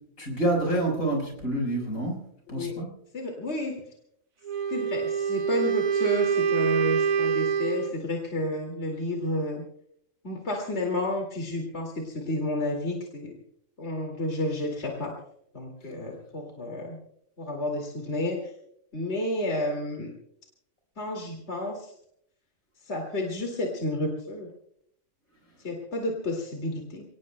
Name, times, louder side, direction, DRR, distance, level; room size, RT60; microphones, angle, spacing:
voice 1, 0.2-2.2 2.5-2.9, right 1 dB, 75° left, 1 dB, 5.4 m, -27 dB
voice 2, 3.1-3.8 4.7-9.6 10.2-13.3 13.8-15.2 15.5-17.0 17.4-18.4 18.9-20.1 21.0-21.9 22.9-24.5 25.6-27.0, left 1 dB, 50° left, 0 dB, 2.6 m, -31 dB
Wind instrument woodwind instrument, 4.4-8.0, right 7 dB, 80° right, 1.3 m, -26 dB
30.0 x 18.5 x 2.2 m, 0.72 s
omnidirectional pair, 1.4 m